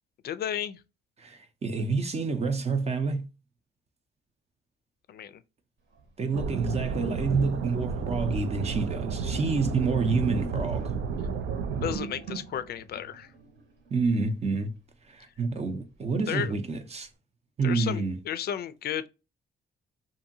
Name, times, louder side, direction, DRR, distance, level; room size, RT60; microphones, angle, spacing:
voice 1, 0.2-0.8 5.1-5.4 11.7-13.3 16.3-16.5 17.6-19.1, left 10 dB, 55° left, 0.4 m, -33 dB
voice 2, 1.2-3.2 6.2-10.9 13.9-14.7 15.1-17.1 17.6-18.2, right 4 dB, 35° right, 0.6 m, -28 dB
Sink (filling or washing), 6.0-6.1 6.7-14.0, right 5 dB, 70° right, 1.1 m, -41 dB
sound 1, 6.3-12.0, right 5 dB, 85° right, 0.4 m, -32 dB
2.7 x 2.6 x 2.6 m
cardioid pair, 90°, 20 cm